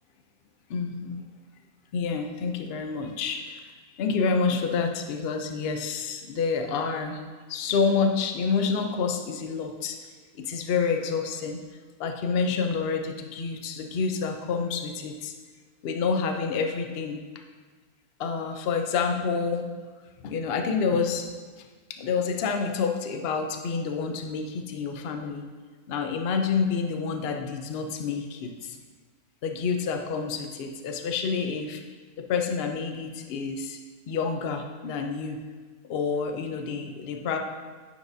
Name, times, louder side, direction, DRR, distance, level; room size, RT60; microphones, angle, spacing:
voice 1, 0.7-1.2 1.9-3.6 4.0-7.2 7.5-10.0 10.4-11.6 12.0-15.3 15.8-17.2 18.2-19.7 20.2-21.3 21.9-25.5 25.9-28.8 29.4-31.8 32.2-33.8 34.1-35.4 35.9-37.4, left 5 dB, 60° left, 5 dB, 0.6 m, -28 dB
9.1 x 4.7 x 2.6 m, 1.4 s
omnidirectional pair, 1.5 m